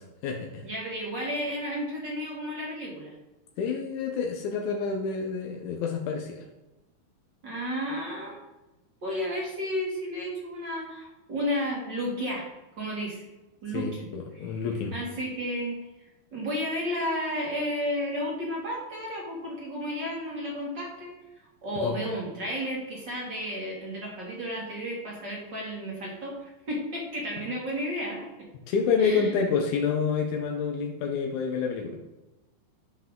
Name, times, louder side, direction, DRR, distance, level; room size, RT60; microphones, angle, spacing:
voice 1, 0.0-0.6 3.6-6.5 13.7-15.0 21.8-22.0 28.7-32.0, left 5 dB, 80° left, 1 dB, 1.7 m, -28 dB
voice 2, 0.6-3.1 7.4-8.4 9.0-12.5 12.8-13.2 13.6-14.0 14.3-14.7 14.9-15.8 16.3-21.1 21.6-28.3 29.0-29.3, equal, 35° right, -3 dB, 1.9 m, -32 dB
12.5 x 5.7 x 3.7 m, 1.0 s
omnidirectional pair, 4.6 m